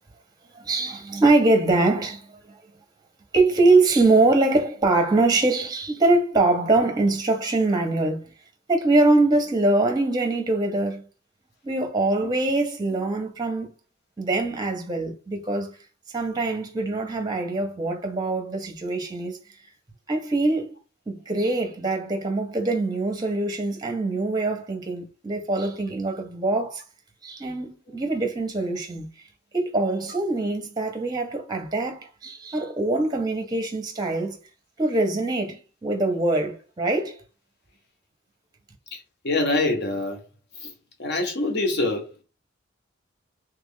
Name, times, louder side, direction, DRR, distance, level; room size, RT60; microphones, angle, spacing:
voice 1, 0.5-2.6 3.3-8.3 8.7-11.0 11.6-13.7 14.2-15.8 16.1-19.4 20.1-20.7 21.1-26.8 27.2-29.1 29.5-34.4 34.8-37.2, right 2 dB, 20° right, 0.7 m, -23 dB
voice 2, 38.9-40.2 40.6-40.7 41.0-42.1, left 2 dB, 55° left, 1.0 m, -26 dB
3.2 x 2.3 x 3.6 m
head